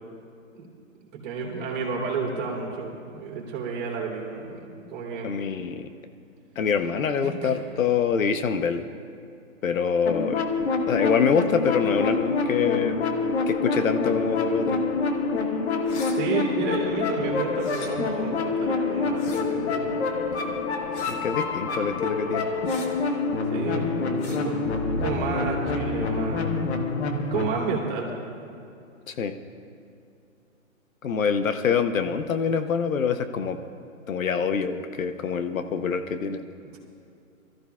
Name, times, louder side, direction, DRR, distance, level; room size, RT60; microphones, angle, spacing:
voice 1, 1.1-5.3 7.2-7.6 16.1-19.8 20.3-20.4 23.5-24.6 25.0-26.6 27.3-28.1 36.7-36.8, right 5 dB, 35° right, -3 dB, 3.5 m, -31 dB
voice 2, 5.2-5.9 6.6-8.9 9.6-10.4 10.9-13.0 13.5-14.8 21.1-22.5 29.1-29.3 31.0-33.6 34.1-36.4, left 6 dB, 70° left, 9 dB, 0.9 m, -25 dB
sound 1, 10.1-27.5, left 4 dB, 50° left, 1.3 m, -26 dB
sound 2, 15.8-16.2 17.6-17.9 19.1-19.4 20.9-21.2 22.6-22.9 24.2-24.4, left 4 dB, 15° left, 0.6 m, -41 dB
25.5 x 14.0 x 2.4 m, 2.5 s
hypercardioid pair, 140°, 41 cm